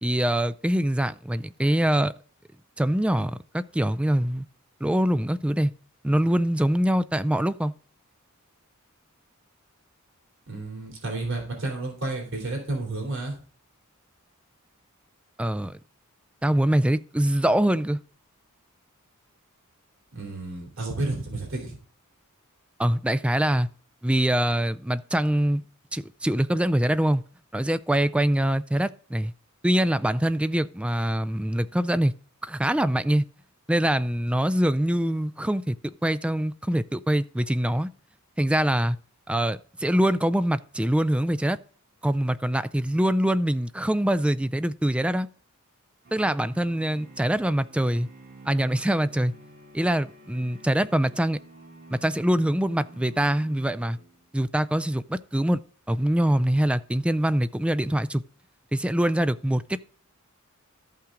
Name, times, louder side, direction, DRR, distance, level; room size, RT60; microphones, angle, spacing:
voice 1, 0.0-2.1 2.8-4.5 4.8-5.7 6.0-7.7 15.4-15.7 16.4-18.0 22.8-23.7 24.0-25.6 25.9-27.2 27.5-29.3 29.6-32.1 32.4-33.3 33.7-35.8 36.0-37.9 38.4-39.0 39.3-41.6 42.0-45.3 46.1-48.1 48.5-49.3 49.7-51.4 51.9-54.0 54.3-55.6 55.9-58.2 58.7-59.6, right 1 dB, 5° right, 0.3 m, -24 dB
voice 2, 10.5-13.4 20.1-21.8, right 2 dB, 60° right, 3.5 m, -31 dB
sound 1, 46.0-54.4, right 1 dB, 45° right, 2.4 m, -50 dB
13.5 x 5.7 x 3.8 m
head